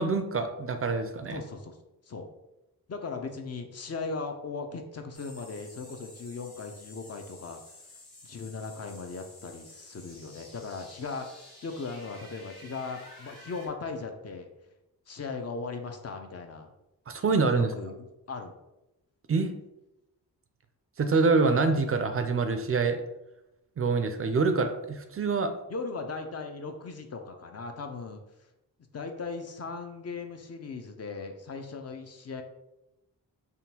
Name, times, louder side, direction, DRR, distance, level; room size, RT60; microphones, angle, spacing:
voice 1, 0.0-1.4 17.1-17.7 19.3-19.5 21.0-23.0 23.8-25.5, right 4 dB, 35° right, 8 dB, 0.4 m, -25 dB
voice 2, 1.3-1.8 2.0-2.3 2.9-7.6 8.2-14.5 15.1-16.7 17.5-18.5 25.7-28.2 28.9-32.4, left 4 dB, 40° left, 5 dB, 0.5 m, -38 dB
sound 1, 5.1-13.7, left 1 dB, 60° left, 1.3 m, -51 dB
3.6 x 2.2 x 2.8 m, 0.93 s
cardioid pair, 50°, 41 cm